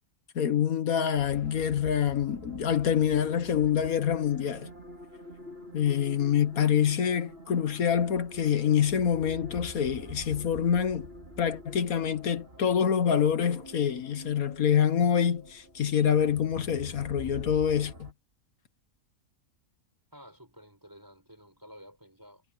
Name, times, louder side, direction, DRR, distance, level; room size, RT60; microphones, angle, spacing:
voice 1, 0.3-4.7 5.7-11.1 11.4-18.1, left 8 dB, 65° left, 1.5 m, -26 dB
sound 1, 1.2-18.1, equal, 40° right, 5.3 m, -46 dB
voice 2, 20.1-22.4, equal, 10° right, 7.8 m, -52 dB
omnidirectional pair, 1.6 m